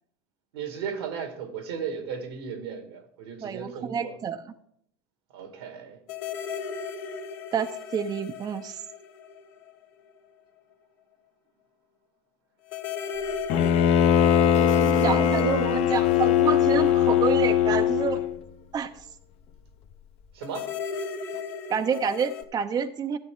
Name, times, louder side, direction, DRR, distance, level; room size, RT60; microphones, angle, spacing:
voice 1, 0.5-4.1 5.3-6.0 20.4-20.7, right 7 dB, 85° right, 1.8 m, -35 dB
voice 2, 3.4-4.5 7.5-8.8 15.0-18.2 18.7-19.0 21.7-23.2, right 7 dB, 35° right, 0.6 m, -28 dB
sound 1, 6.1-9.8 10.1-10.2 12.7-18.1 20.4-22.4, left 5 dB, 70° left, 1.3 m, -36 dB
Bowed string instrument, 13.5-18.4, left 9 dB, 55° left, 0.9 m, -21 dB
12.5 x 8.1 x 3.7 m
hypercardioid pair, 90°, 12 cm